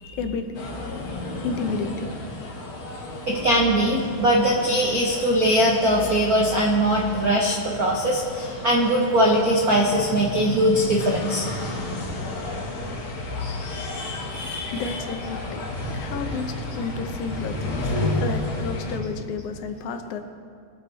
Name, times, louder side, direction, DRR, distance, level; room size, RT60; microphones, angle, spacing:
voice 1, 0.2-0.5 1.4-2.1 14.7-15.6 15.9-17.9 18.2-20.2, left 5 dB, 80° left, 6 dB, 2.3 m, -31 dB
sound 1, 0.5-19.0, left 2 dB, 50° left, 2.2 m, -32 dB
voice 2, 3.3-11.4 13.8-14.7, right 1 dB, 65° right, -2 dB, 0.9 m, -21 dB
23.5 x 8.8 x 4.1 m, 2.2 s
omnidirectional pair, 3.4 m